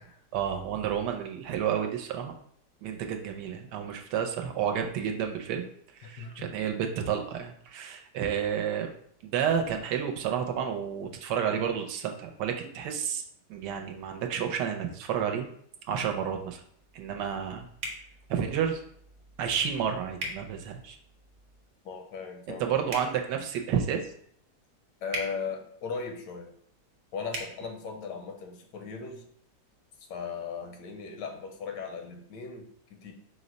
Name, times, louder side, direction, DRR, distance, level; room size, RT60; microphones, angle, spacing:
voice 1, 0.3-2.3 2.8-5.6 6.0-8.9 9.2-13.2 13.5-15.5 15.9-16.6 16.9-17.7 18.3-18.8 19.4-21.0 22.6-24.1, right 8 dB, 80° right, 4 dB, 1.2 m, -30 dB
voice 2, 6.0-6.5 21.8-22.9 25.0-26.6 27.1-29.2 30.1-33.1, left 5 dB, 90° left, 4 dB, 1.3 m, -38 dB
sound 1, 17.8-18.0 20.2-20.4 22.8-23.1 25.1-25.3 27.3-27.5, right 1 dB, 55° right, 1.0 m, -34 dB
4.8 x 2.1 x 3.8 m, 0.65 s
omnidirectional pair, 1.8 m